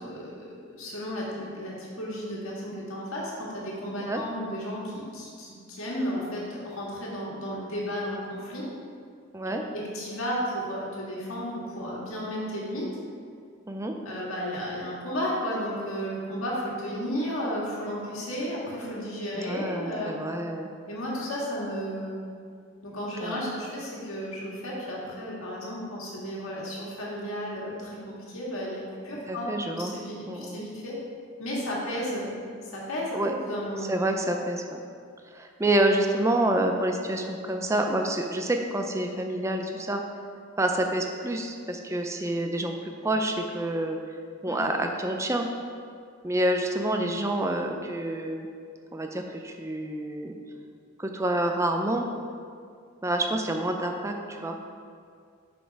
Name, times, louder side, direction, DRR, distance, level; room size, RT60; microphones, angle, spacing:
voice 1, 0.0-8.7 9.5-12.9 14.0-20.1 20.9-22.3 22.8-29.5 29.8-31.0 31.4-32.4 32.7-33.1 33.5-33.9 44.5-44.6, equal, 70° left, -5 dB, 1.8 m, -33 dB
voice 2, 19.3-20.7 23.2-23.4 29.3-29.9 30.3-30.7 33.1-33.5 33.9-34.8 35.3-40.0 40.6-44.0 44.4-45.5 46.2-48.5 48.9-50.4 51.0-52.1 53.0-54.6, right 1 dB, 15° right, 3 dB, 0.5 m, -28 dB
6.3 x 5.7 x 4.6 m, 2.3 s
head